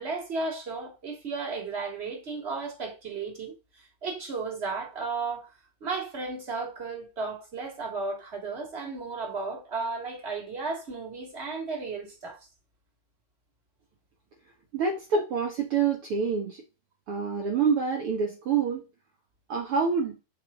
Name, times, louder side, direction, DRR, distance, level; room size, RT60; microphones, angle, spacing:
voice 1, 0.0-5.5 5.8-12.4, right 4 dB, 20° right, 2.5 m, -34 dB
voice 2, 14.7-16.6 17.1-18.8 19.5-20.1, right 5 dB, 60° right, 1.5 m, -26 dB
5.3 x 4.8 x 6.0 m
omnidirectional pair, 4.3 m